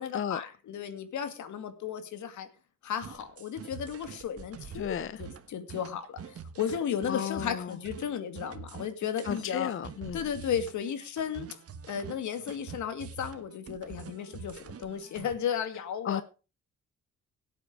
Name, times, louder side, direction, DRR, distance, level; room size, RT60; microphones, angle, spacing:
voice 1, 0.0-2.5 2.8-9.7 10.1-11.6 11.9-16.2, left 8 dB, 70° left, 2.3 m, -34 dB
sound 1, 3.0-15.3, right 6 dB, 50° right, 1.4 m, -45 dB
voice 2, 4.7-5.2 7.1-7.8 9.2-10.2 16.0-16.2, left 9 dB, 45° left, 0.7 m, -33 dB
17.0 x 8.2 x 5.0 m
cardioid pair, 90°, 30 cm